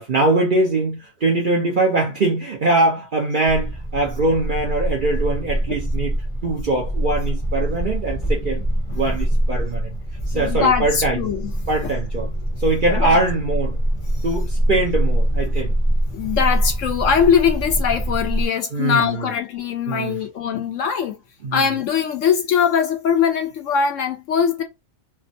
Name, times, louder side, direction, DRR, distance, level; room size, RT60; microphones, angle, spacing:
voice 1, 0.0-6.2 6.4-8.6 8.9-10.0 10.3-11.3 11.7-12.3 12.6-13.8 14.2-15.7 18.7-19.3 19.9-20.2 21.4-21.7, right 2 dB, 50° right, 0.6 m, -22 dB
sound 1, 3.4-18.5, right 1 dB, 30° left, 0.6 m, -24 dB
voice 2, 10.3-11.5 13.0-13.1 16.1-21.2 21.5-24.6, left 7 dB, 70° left, 0.9 m, -21 dB
3.4 x 2.1 x 2.6 m
omnidirectional pair, 1.5 m